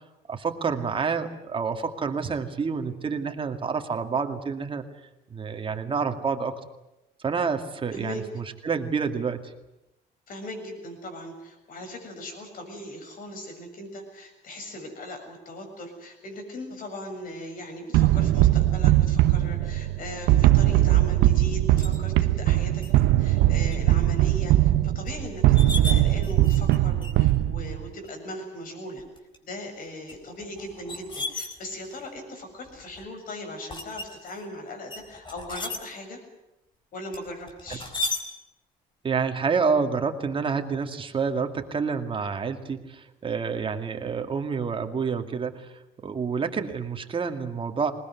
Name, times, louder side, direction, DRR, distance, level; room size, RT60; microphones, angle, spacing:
voice 1, 0.3-4.9 5.3-6.6 7.2-9.5 39.0-47.9, right 5 dB, 30° right, 6 dB, 2.4 m, -28 dB
voice 2, 7.9-8.2 10.3-29.0 29.4-36.2 36.9-37.9, left 1 dB, 55° left, 4 dB, 7.4 m, -39 dB
sound 1, 17.9-27.9, right 14 dB, 90° right, 1.0 m, -20 dB
sound 2, 21.8-22.0 22.8-22.9 23.4-23.7 24.2-24.3 25.1-25.2 25.4-26.8 27.0-27.3 28.0-28.1 29.0-29.4 30.1-32.0 32.7-33.0 33.7-34.4 34.9-35.8 37.1-38.2, left 2 dB, 30° left, 4.2 m, -34 dB
20.5 x 20.0 x 9.8 m, 0.91 s
cardioid pair, 110°, 17 cm